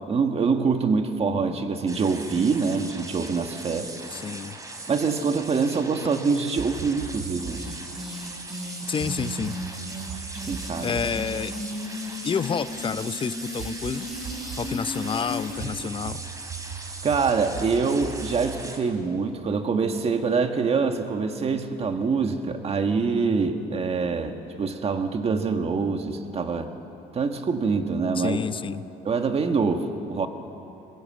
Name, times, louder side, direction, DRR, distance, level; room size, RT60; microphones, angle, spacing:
voice 1, 0.1-3.9 4.9-7.6 10.5-10.9 17.0-26.7 27.1-28.4 29.0-30.3, right 5 dB, 35° right, 6 dB, 1.7 m, -25 dB
sound 1, 1.9-18.8, right 2 dB, 20° right, 2.9 m, -39 dB
voice 2, 4.1-4.6 6.0-6.1 8.9-9.5 10.8-11.5 12.2-14.1 14.5-16.2 28.2-28.8, left 6 dB, 30° left, 14 dB, 0.7 m, -29 dB
sound 2, 6.6-7.9 9.0-12.7 13.6-14.8 15.6-19.5, right 7 dB, 75° right, 1.7 m, -40 dB
sound 3, 7.4-15.7, left 1 dB, ahead, 4.3 m, -36 dB
23.5 x 20.5 x 7.7 m, 2.8 s
cardioid pair, 110°, 17 cm